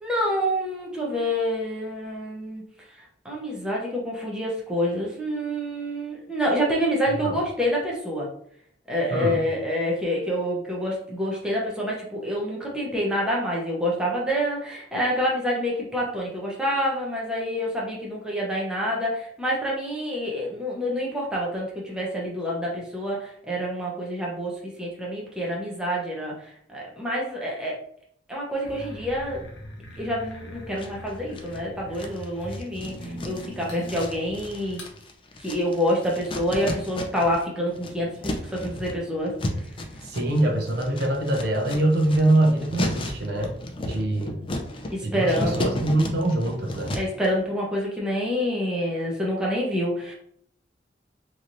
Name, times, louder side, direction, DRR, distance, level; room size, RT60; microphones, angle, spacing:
voice 1, 0.0-2.6 3.0-8.3 8.9-26.3 26.7-27.8 28.3-29.5 30.0-34.8 35.4-39.3 44.9-45.8 46.9-50.1, equal, 5° right, -4 dB, 0.7 m, -27 dB
voice 2, 9.1-9.5 40.0-43.5 43.8-44.4 45.0-47.0, right 1 dB, 60° right, 1 dB, 0.6 m, -23 dB
sound 1, 28.6-34.9, equal, 65° left, 0.7 m, -40 dB
sound 2, 30.8-31.6 32.0-37.4 37.7-47.3, left 1 dB, 30° left, 0.4 m, -34 dB
3.1 x 2.7 x 2.6 m, 0.66 s
head